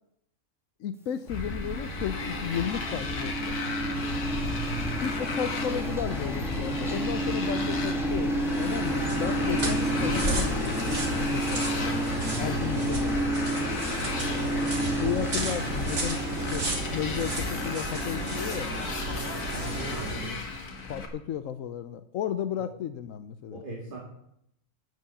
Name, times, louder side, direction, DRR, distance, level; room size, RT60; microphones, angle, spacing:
voice 1, 0.8-3.6 5.0-11.9 12.4-13.3 14.9-16.7 16.9-18.8 20.9-23.6, left 9 dB, 65° left, 12 dB, 1.0 m, -34 dB
Motorcycle, 1.3-21.1, left 3 dB, 80° left, 2.2 m, -35 dB
sound 1, 1.3-20.3, right 1 dB, ahead, 1.9 m, -31 dB
sound 2, 8.4-20.4, right 2 dB, 60° right, 3.3 m, -34 dB
voice 2, 15.4-15.7 19.5-20.4 22.6-22.7 23.5-24.0, right 2 dB, 35° right, -2 dB, 2.3 m, -40 dB
12.5 x 9.4 x 7.0 m, 0.77 s
omnidirectional pair, 1.6 m